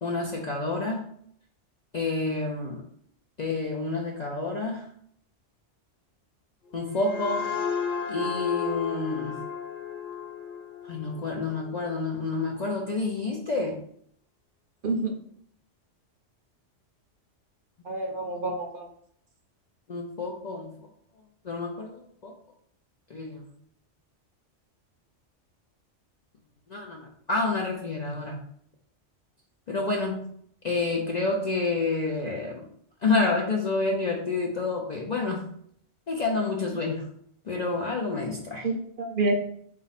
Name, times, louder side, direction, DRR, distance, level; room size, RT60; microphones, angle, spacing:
voice 1, 0.0-1.1 1.9-2.8 3.4-4.9 6.7-7.5 8.1-9.4 10.8-13.8 19.9-20.9 21.4-22.3 23.1-23.5 26.7-28.4 29.7-30.3 30.6-32.7 33.0-35.5 36.1-37.1 37.5-38.7, left 3 dB, 55° left, 0 dB, 0.5 m, -29 dB
sound 1, 6.7-12.2, left 7 dB, 70° left, 0.9 m, -34 dB
voice 2, 17.8-18.9 38.6-39.3, right 2 dB, 60° right, 3 dB, 0.6 m, -28 dB
4.0 x 2.5 x 4.0 m, 0.65 s
omnidirectional pair, 1.2 m